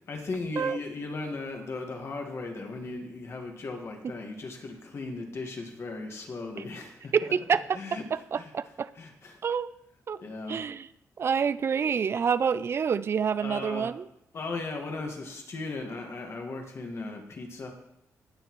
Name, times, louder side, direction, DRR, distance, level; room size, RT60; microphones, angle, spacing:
voice 1, 0.1-7.3 7.7-8.5 8.9-9.4 10.2-10.6 13.4-13.9 14.3-17.7, left 3 dB, 50° left, 2 dB, 1.6 m, -37 dB
voice 2, 7.1-7.8 8.3-8.9 9.4-9.7 10.1-10.2 10.5-10.9 11.2-14.0, right 6 dB, 45° right, 16 dB, 0.4 m, -27 dB
19.0 x 6.6 x 3.1 m, 0.79 s
cardioid pair, 110°, 6 cm